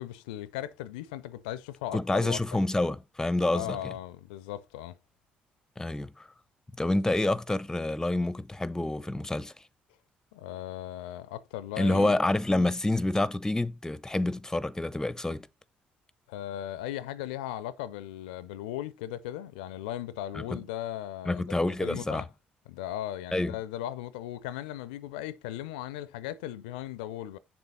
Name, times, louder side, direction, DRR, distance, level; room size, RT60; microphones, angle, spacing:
voice 1, 0.0-2.4 3.5-5.0 10.3-12.2 16.3-22.3 22.7-27.4, left 13 dB, 75° left, 0.5 m, -37 dB
voice 2, 1.9-3.9 5.8-6.3 6.8-9.5 11.8-15.5 20.3-20.6 21.3-22.2 23.3-23.6, left 2 dB, 10° left, 0.7 m, -28 dB
7.9 x 6.9 x 4.2 m
figure-of-eight pair, 45°, 5 cm